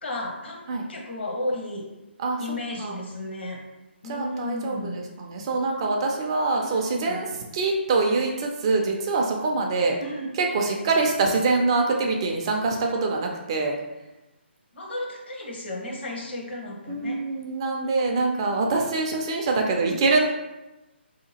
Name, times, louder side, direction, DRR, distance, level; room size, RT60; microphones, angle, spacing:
voice 1, 0.0-0.6 0.9-1.9 2.4-3.6 4.0-5.1 6.5-7.3 10.0-10.9 14.7-17.2 19.8-20.0, left 1 dB, 70° left, 0 dB, 0.9 m, -34 dB
voice 2, 4.1-10.0 10.4-13.8 16.9-20.2, right 3 dB, 25° right, 1 dB, 0.3 m, -24 dB
3.5 x 2.8 x 2.8 m, 1.0 s
hypercardioid pair, 160°, 6 cm